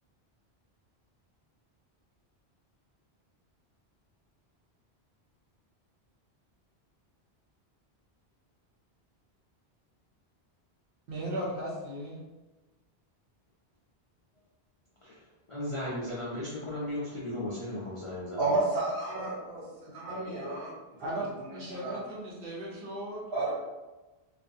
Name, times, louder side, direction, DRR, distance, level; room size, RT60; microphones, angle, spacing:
voice 1, 11.1-12.2 21.0-23.2, right 1 dB, 60° right, -4 dB, 0.9 m, -37 dB
voice 2, 15.5-18.5, left 1 dB, 45° left, -8 dB, 0.4 m, -36 dB
voice 3, 18.4-22.0 23.3-23.5, right 2 dB, 80° right, -6 dB, 1.2 m, -32 dB
2.4 x 2.3 x 2.6 m, 1.1 s
omnidirectional pair, 1.1 m